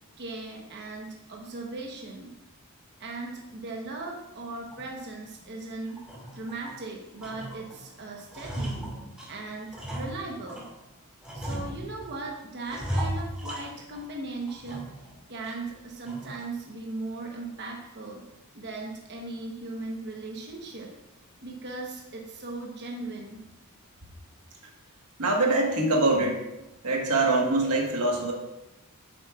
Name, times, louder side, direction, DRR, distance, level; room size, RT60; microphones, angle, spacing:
voice 1, 0.2-2.3 3.0-6.0 6.3-8.9 9.3-10.7 11.3-14.9 15.3-18.3 18.5-20.9 21.4-23.4, right 3 dB, 50° right, 0 dB, 1.0 m, -38 dB
sound 1, 4.7-4.9 5.3-5.5 5.9-6.8 7.2-7.8 8.1-10.7 11.2-12.2 12.7-14.1 14.5-15.1 15.4-15.5 16.0-16.4, equal, 5° right, 1.9 m, -36 dB
voice 2, 25.2-26.4 26.8-28.3, right 2 dB, 85° right, 1 dB, 1.4 m, -24 dB
10.0 x 7.5 x 2.4 m, 0.94 s
head